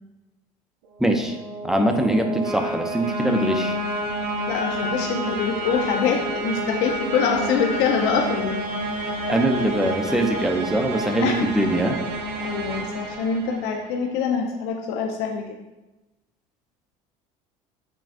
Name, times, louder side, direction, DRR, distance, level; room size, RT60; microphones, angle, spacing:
voice 1, 1.0-1.4 1.6-3.8 9.3-12.0, right 1 dB, 5° right, 4 dB, 0.5 m, -22 dB
sound 1, 1.0-14.0, right 1 dB, 65° right, 0.6 m, -29 dB
voice 2, 4.5-8.6 11.2-11.5 12.4-15.4, left 6 dB, 70° left, 3 dB, 0.5 m, -24 dB
5.7 x 2.3 x 2.5 m, 1.0 s
supercardioid pair, 85°, 18 cm